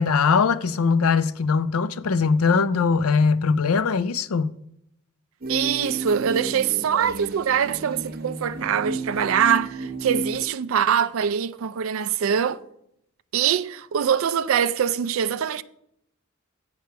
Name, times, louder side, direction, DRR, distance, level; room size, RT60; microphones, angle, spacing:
voice 1, 0.0-4.5, left 5 dB, 85° left, 0.5 m, -21 dB
sound 1, 5.4-10.5, right 2 dB, 45° right, 0.9 m, -32 dB
voice 2, 5.5-12.6 13.3-15.6, right 8 dB, 70° right, 0.4 m, -23 dB
8.0 x 4.9 x 6.7 m
head